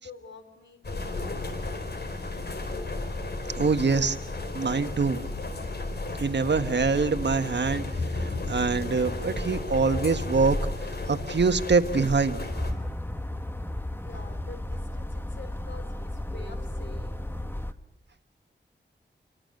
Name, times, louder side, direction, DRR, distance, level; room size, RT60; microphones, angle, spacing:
voice 1, 0.0-1.6 14.0-17.3, left 4 dB, 75° left, 7 dB, 4.1 m, -47 dB
sound 1, 0.8-12.7, left 2 dB, 60° left, 4.0 m, -33 dB
voice 2, 3.5-4.2 4.5-5.2 6.2-7.8 8.1-10.6 11.1-12.4, right 4 dB, 65° right, 8 dB, 1.5 m, -24 dB
sound 2, 12.5-17.7, left 1 dB, 10° left, 1.3 m, -34 dB
29.5 x 24.0 x 6.6 m, 0.75 s
wide cardioid pair, 90°, 19 cm